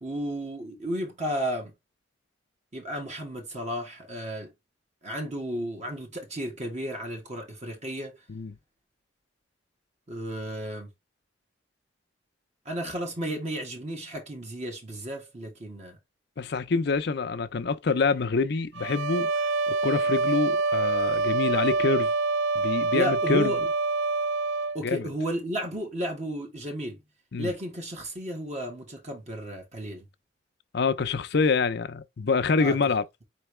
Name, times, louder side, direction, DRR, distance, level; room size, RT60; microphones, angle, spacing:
voice 1, 0.0-1.7 2.7-4.5 5.0-8.1 10.1-10.9 12.6-16.0 22.9-23.6 24.7-27.0 27.4-30.1 32.6-32.8, equal, 40° right, 1.4 m, -33 dB
voice 2, 16.4-19.3 19.7-22.1 22.5-23.5 24.8-25.1 27.3-27.5 30.7-33.0, left 4 dB, 60° left, 0.6 m, -26 dB
sound 1, 18.8-24.8, right 3 dB, 75° right, 0.4 m, -26 dB
4.6 x 3.4 x 3.1 m
head